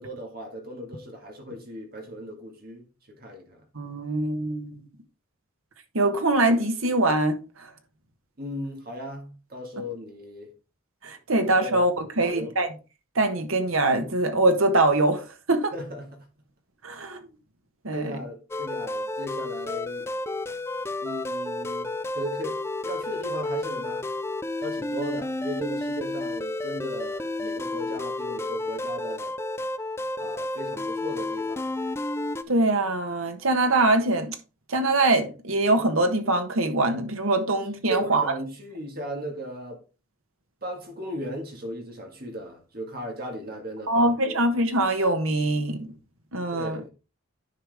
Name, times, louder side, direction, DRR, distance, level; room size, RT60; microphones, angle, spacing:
voice 1, 0.0-3.7 8.4-10.5 11.6-11.8 12.2-12.5 15.7-16.2 16.9-17.0 17.9-20.1 21.0-24.1 24.6-29.4 30.2-31.7 37.9-39.9 40.6-44.4 46.5-46.9, equal, 45° right, 1.9 m, -37 dB
voice 2, 3.7-4.7 5.9-7.4 11.0-12.7 13.1-15.7 16.8-17.2 17.8-18.2 32.5-34.3 34.7-38.2 43.9-45.9 46.3-46.8, right 2 dB, 75° right, 1.3 m, -23 dB
sound 1, 18.5-32.4, left 2 dB, 10° left, 0.3 m, -31 dB
9.9 x 4.9 x 3.5 m
head